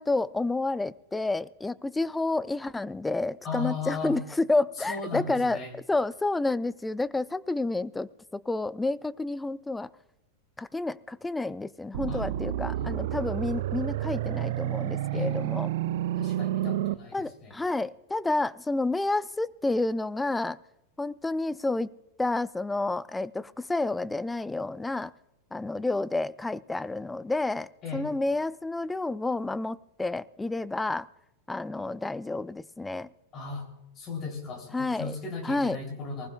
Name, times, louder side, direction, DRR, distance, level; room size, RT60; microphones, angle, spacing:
voice 1, 0.0-9.9 10.6-15.7 17.1-20.6 21.0-21.9 22.2-25.1 25.5-31.1 31.5-33.1 34.7-35.2 35.4-35.8, left 2 dB, 10° left, 19 dB, 0.4 m, -30 dB
voice 2, 3.4-4.2 4.9-5.7 12.1-12.2 12.7-13.2 15.1-15.6 16.1-17.6 27.8-28.1 33.3-33.7 33.9-36.3, left 4 dB, 30° left, 3 dB, 3.3 m, -36 dB
sound 1, 11.9-16.9, right 13 dB, 55° right, 0.5 m, -30 dB
20.0 x 19.5 x 2.4 m, 0.91 s
figure-of-eight pair, 90°, 0 cm